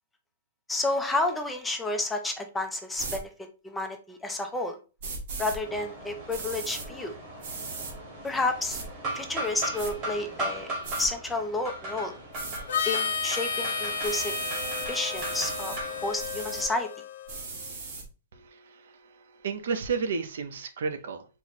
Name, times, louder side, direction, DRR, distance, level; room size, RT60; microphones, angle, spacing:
voice 1, 0.7-3.3 3.6-4.8 5.4-7.1 8.2-8.8 9.1-12.2 12.9-14.3 14.9-15.8 16.0-16.9, left 2 dB, 5° left, 5 dB, 0.4 m, -30 dB
sound 1, 3.0-3.2 5.0-5.6 6.3-6.9 7.4-7.9 8.7-8.9 9.4-9.9 10.8-11.1 12.3-12.6 14.0-14.9 15.1-15.8 16.2-16.7 17.3-18.0, right 4 dB, 45° right, 1.2 m, -37 dB
sound 2, 5.6-16.1, right 1 dB, 25° right, 1.2 m, -38 dB
Harmonica, 12.7-17.4, left 5 dB, 65° left, 0.8 m, -32 dB
voice 2, 18.3-21.3, right 5 dB, 65° right, 9 dB, 0.6 m, -33 dB
4.4 x 2.0 x 4.0 m, 0.32 s
hypercardioid pair, 170°, 0 cm